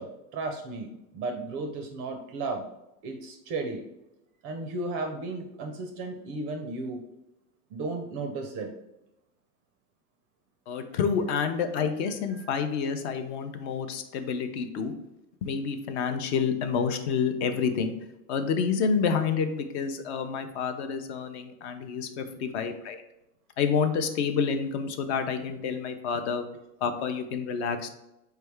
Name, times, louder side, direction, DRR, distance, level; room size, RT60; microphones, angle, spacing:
voice 1, 0.0-2.6 3.0-3.8 4.4-7.0 7.7-8.7 10.9-11.0 12.3-12.9 22.4-22.7, right 3 dB, 30° right, 4 dB, 0.4 m, -35 dB
voice 2, 10.7-14.9 15.4-17.9 18.3-23.0 23.6-26.4 26.8-27.9, left 6 dB, 50° left, 8 dB, 0.6 m, -28 dB
4.6 x 3.4 x 3.3 m, 0.89 s
supercardioid pair, 140°, 43 cm